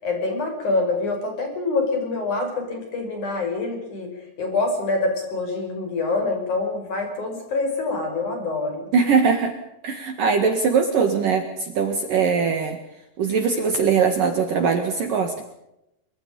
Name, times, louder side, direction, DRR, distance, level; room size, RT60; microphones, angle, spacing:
voice 1, 0.0-8.9, left 3 dB, 40° left, 3 dB, 7.0 m, -26 dB
voice 2, 8.9-9.5 9.8-12.8 13.2-15.4, right 5 dB, 55° right, 5 dB, 2.9 m, -21 dB
24.5 x 24.5 x 5.4 m, 0.85 s
omnidirectional pair, 5.4 m